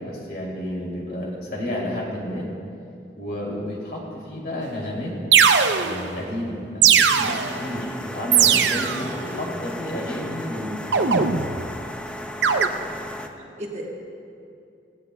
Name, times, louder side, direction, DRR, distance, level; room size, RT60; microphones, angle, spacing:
voice 1, 0.0-2.5 3.2-5.2 5.7-11.3, left 1 dB, 60° left, -3 dB, 2.7 m, -31 dB
sound 1, 4.6-4.7 5.3-6.1 6.8-7.6 8.3-9.1 10.9-11.7 12.4-12.7, right 7 dB, 85° right, 0.6 m, -19 dB
sound 2, 7.2-13.3, left 1 dB, 5° left, 0.4 m, -35 dB
voice 2, 12.8-13.9, right 1 dB, 40° right, -1 dB, 1.3 m, -38 dB
17.0 x 15.5 x 2.3 m, 2.5 s
head